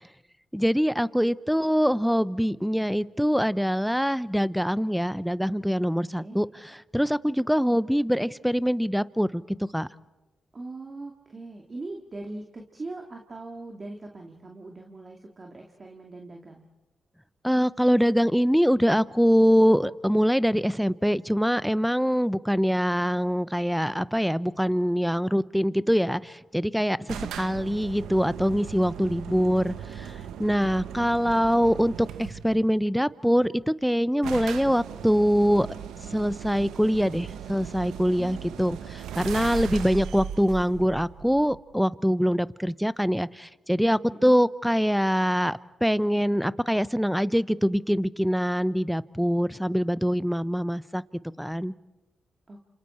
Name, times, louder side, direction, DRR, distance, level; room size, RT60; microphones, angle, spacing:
voice 1, 0.5-9.4 9.7-9.9 17.4-27.0 27.4-35.7 36.1-51.0 51.4-51.7, equal, ahead, 18 dB, 0.7 m, -24 dB
voice 2, 10.5-16.7 27.0-27.3 38.2-38.6 44.1-44.4 52.5-52.6, right 2 dB, 40° right, 1 dB, 2.3 m, -41 dB
sound 1, 27.1-32.6 33.6-33.7 33.9-34.0 34.2-41.7, right 9 dB, 85° right, 0.9 m, -38 dB
29.0 x 27.0 x 4.4 m, 1.1 s
supercardioid pair, 45°, 0 cm